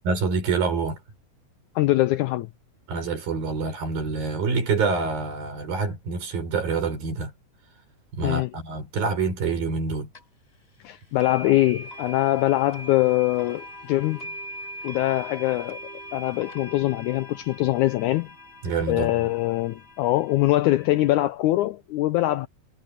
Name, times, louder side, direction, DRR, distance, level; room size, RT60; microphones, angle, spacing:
voice 1, 0.0-1.0 2.9-7.3 8.1-10.1 18.6-19.1, right 4 dB, 85° right, 7.1 m, -26 dB
voice 2, 1.8-2.5 8.2-8.5 10.8-14.3 14.8-15.8 16.1-18.3 18.9-22.5, left 16 dB, 85° left, 1.7 m, -23 dB
sound 1, 10.1-10.2 11.2-21.3, equal, 15° left, 4.6 m, -41 dB
omnidirectional pair, 4.0 m